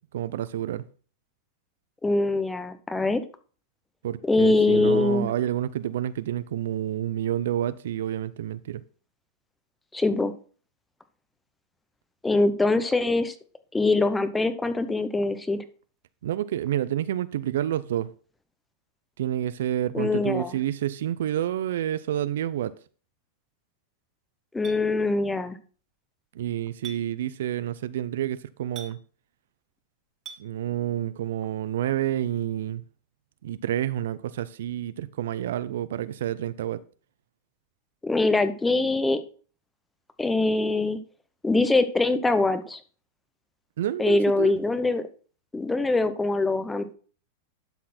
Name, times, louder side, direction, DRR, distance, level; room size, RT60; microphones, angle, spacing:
voice 1, 0.1-0.8 4.0-8.8 16.2-18.1 19.2-22.7 26.3-29.0 30.4-32.8 33.4-36.8 43.8-44.6, right 11 dB, 75° right, 0.5 m, -29 dB
voice 2, 2.0-3.2 4.3-5.3 9.9-10.3 12.2-13.3 13.7-15.6 19.9-20.6 24.5-25.6 38.0-39.2 40.2-41.0 41.4-42.8 44.0-45.0 45.5-46.9, left 2 dB, 10° left, 0.8 m, -23 dB
Chink clink, 24.6-24.8 26.8-27.0 28.8-28.9 30.3-30.4, right 6 dB, 30° right, 1.8 m, -40 dB
11.5 x 4.2 x 4.3 m
hypercardioid pair, 120°, 0 cm